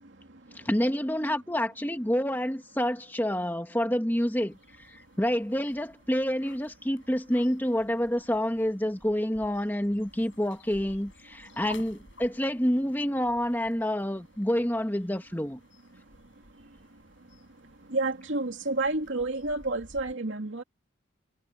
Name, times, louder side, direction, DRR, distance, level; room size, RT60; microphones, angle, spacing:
voice 1, 0.5-15.6, equal, 10° left, 1.4 m, -28 dB
sound 1, 4.5-20.1, left 3 dB, 75° left, 7.1 m, -54 dB
voice 2, 17.9-20.6, right 2 dB, 70° right, 2.5 m, -29 dB
head